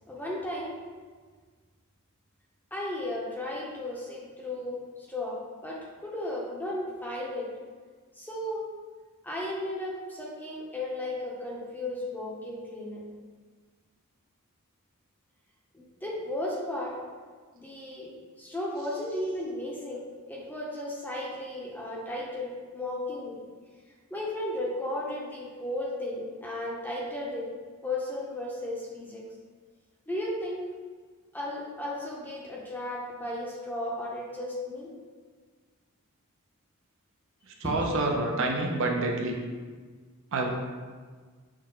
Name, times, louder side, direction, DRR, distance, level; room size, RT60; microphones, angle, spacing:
voice 1, 0.1-0.8 2.7-7.5 8.2-8.7 9.2-13.0 15.7-17.0 17.5-18.1 18.4-20.0 20.3-23.4 24.1-27.5 27.8-29.2 30.1-30.7 31.3-34.9 37.6-38.1, left 1 dB, 10° left, -4 dB, 0.7 m, -35 dB
voice 2, 37.6-39.4 40.3-40.5, right 2 dB, 60° right, 1 dB, 0.5 m, -27 dB
6.3 x 2.2 x 3.7 m, 1.5 s
head